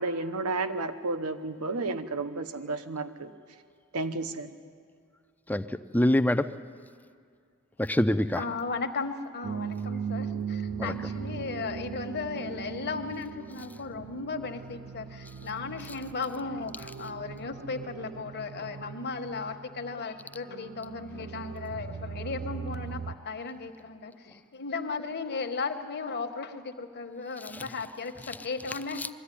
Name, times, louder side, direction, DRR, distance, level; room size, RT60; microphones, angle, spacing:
voice 1, 0.0-3.3 3.9-4.5, right 3 dB, 80° right, 10 dB, 0.9 m, -32 dB
voice 2, 5.5-6.5 7.8-8.4 10.8-10.9 27.5-27.6 29.0-29.1, left 1 dB, 5° left, 9 dB, 0.5 m, -25 dB
voice 3, 8.4-29.0, left 4 dB, 50° left, 7 dB, 1.1 m, -36 dB
sound 1, 9.4-23.2, right 6 dB, 55° right, 0.5 m, -39 dB
21.0 x 14.0 x 10.0 m, 2.1 s
head